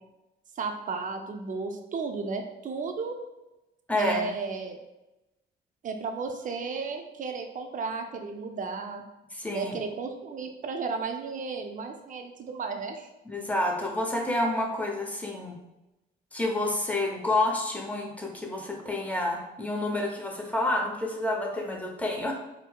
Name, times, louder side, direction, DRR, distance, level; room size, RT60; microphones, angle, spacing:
voice 1, 0.6-3.2 4.0-4.8 5.8-9.0 9.5-13.1, right 4 dB, 40° right, 5 dB, 0.5 m, -34 dB
voice 2, 3.9-4.3 9.3-9.8 13.3-15.6 16.3-22.3, left 1 dB, 5° left, 1 dB, 0.7 m, -29 dB
4.3 x 2.0 x 2.3 m, 0.97 s
supercardioid pair, 65°, 20 cm